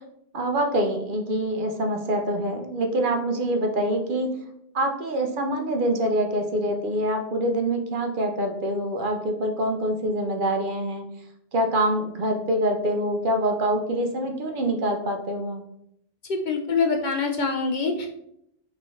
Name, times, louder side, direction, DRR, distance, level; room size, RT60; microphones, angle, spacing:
voice 1, 0.3-4.3 4.7-11.0 11.5-15.6, right 1 dB, 60° right, 4 dB, 0.7 m, -25 dB
voice 2, 16.3-18.1, left 4 dB, 60° left, 4 dB, 0.6 m, -25 dB
5.4 x 2.8 x 3.1 m, 0.76 s
omnidirectional pair, 1.1 m